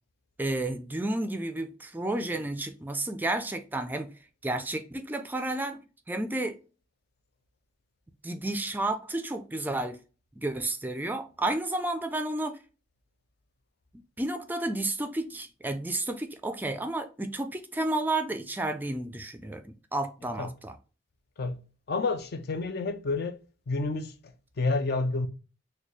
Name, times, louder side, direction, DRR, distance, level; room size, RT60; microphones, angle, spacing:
voice 1, 0.4-4.1 4.4-5.8 6.1-6.6 8.2-10.0 10.4-12.6 14.2-20.8, right 2 dB, 10° right, 0.3 m, -31 dB
voice 2, 21.9-23.4 23.7-25.3, left 3 dB, 60° left, 0.5 m, -29 dB
4.1 x 2.2 x 3.1 m
head